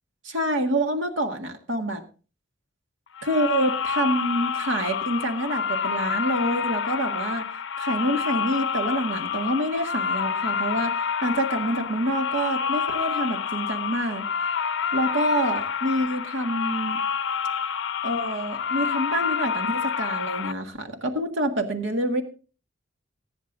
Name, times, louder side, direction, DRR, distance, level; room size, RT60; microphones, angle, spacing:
voice 1, 0.2-2.0 3.2-7.4 7.8-14.2 14.9-17.0 18.0-22.2, right 1 dB, 75° right, 4 dB, 1.8 m, -27 dB
sound 1, 3.2-20.5, left 6 dB, 65° left, 0.6 m, -28 dB
21.0 x 9.8 x 2.6 m, 0.35 s
head